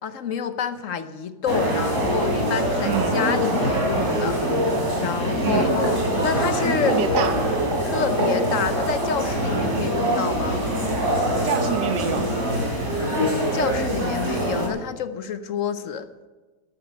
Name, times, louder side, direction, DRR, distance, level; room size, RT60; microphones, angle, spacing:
voice 1, 0.0-4.4 5.0-6.9 7.8-10.6 13.5-16.1, left 7 dB, 55° left, 11 dB, 1.0 m, -28 dB
sound 1, 1.5-14.7, equal, 40° right, 3.7 m, -24 dB
voice 2, 2.8-3.2 5.4-5.7 6.6-7.5 9.7-9.9 11.4-12.4, right 8 dB, 80° right, 9 dB, 1.7 m, -27 dB
Laughter, 3.2-8.9 10.2-10.8, right 1 dB, 60° right, 3.2 m, -28 dB
13.0 x 12.0 x 5.3 m, 1.3 s
omnidirectional pair, 1.9 m